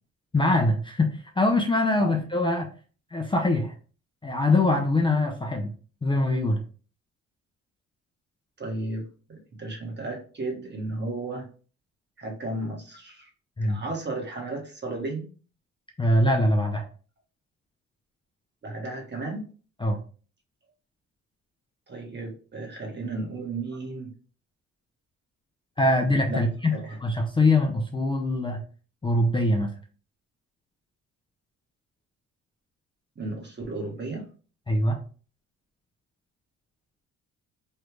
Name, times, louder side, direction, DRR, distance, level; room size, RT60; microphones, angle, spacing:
voice 1, 0.3-2.7 3.1-3.7 4.2-5.7 6.0-6.6 13.6-13.8 16.0-16.8 19.8-20.0 25.8-26.7 27.0-28.6 29.0-29.7 34.7-35.0, left 2 dB, 15° left, 1 dB, 0.5 m, -23 dB
voice 2, 8.6-11.4 12.2-13.3 13.6-15.3 18.6-19.5 21.9-24.1 26.3-26.4 26.7-27.0 33.2-34.3, right 2 dB, 35° right, 0 dB, 1.3 m, -34 dB
3.2 x 2.3 x 3.2 m, 0.39 s
cardioid pair, 90°, 30 cm